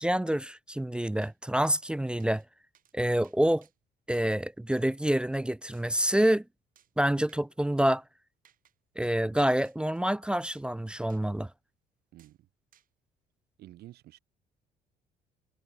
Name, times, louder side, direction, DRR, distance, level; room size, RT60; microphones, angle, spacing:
voice 1, 0.0-2.4 2.9-3.7 4.1-6.4 7.0-8.0 9.0-11.5, right 1 dB, 5° right, 0.4 m, -27 dB
sound 1, 1.2-1.4 1.7-1.8 2.2-2.5 2.7-2.9 3.2-3.7 4.1-4.4 4.7-4.9 5.7-6.4 6.8-6.9 7.3-7.4 7.9-8.0 8.4-8.7 9.0-9.2 9.6-10.0 10.5-10.7 11.1-11.3 12.2-12.3 12.7-12.9, right 10 dB, 55° right, 4.2 m, -64 dB
voice 2, 12.1-12.5 13.6-14.2, right 15 dB, 70° right, 2.0 m, -50 dB
cardioid pair, 110°, 17 cm